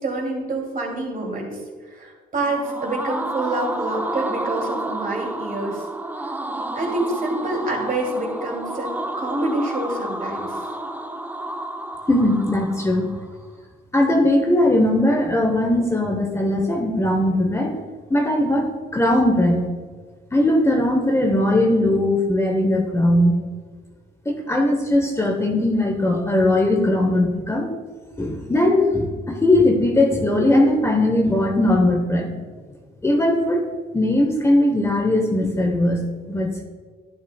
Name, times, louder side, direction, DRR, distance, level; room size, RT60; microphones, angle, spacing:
voice 1, 0.0-1.6 1.9-5.8 6.7-10.6, right 2 dB, 45° right, -1 dB, 2.8 m, -27 dB
sound 1, 2.4-13.3, right 1 dB, 10° right, 0.6 m, -30 dB
voice 2, 12.1-13.1 13.9-17.8 18.1-19.6 20.3-23.4 24.2-27.7 28.2-32.3 33.0-33.7 33.9-36.6, left 1 dB, 15° left, 2 dB, 1.1 m, -19 dB
11.0 x 9.6 x 2.4 m, 1.5 s
cardioid pair, 90°, 20 cm